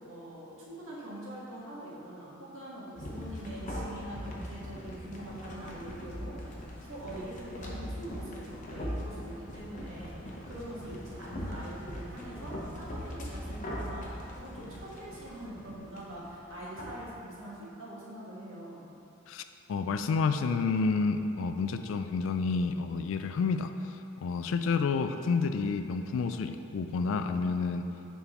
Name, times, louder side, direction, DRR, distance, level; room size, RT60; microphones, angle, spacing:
voice 1, 0.1-14.1 14.3-18.9, right 1 dB, 75° right, -6 dB, 1.4 m, -44 dB
sound 1, 3.0-17.0, equal, 40° left, 0.8 m, -41 dB
voice 2, 19.7-23.7 24.2-27.9, left 4 dB, 75° left, 8 dB, 0.3 m, -29 dB
9.6 x 3.5 x 3.0 m, 2.8 s
head